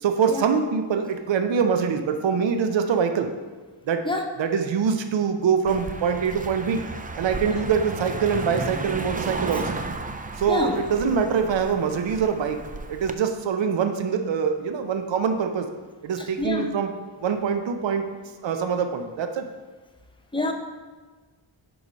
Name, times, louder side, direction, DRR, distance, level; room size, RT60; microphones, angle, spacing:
voice 1, 0.0-3.3 3.9-4.0 4.4-6.8 7.2-9.8 10.4-12.6 12.9-15.7 16.0-16.9 17.2-18.0 18.4-19.5, right 6 dB, 70° right, 7 dB, 0.7 m, -24 dB
Car passing by, 5.7-13.1, right 3 dB, 20° right, 0.3 m, -34 dB
voice 2, 10.5-10.8 16.2-16.7 20.3-20.5, left 2 dB, 10° left, 2 dB, 0.8 m, -26 dB
6.9 x 4.8 x 5.2 m, 1.3 s
wide cardioid pair, 115°, 47 cm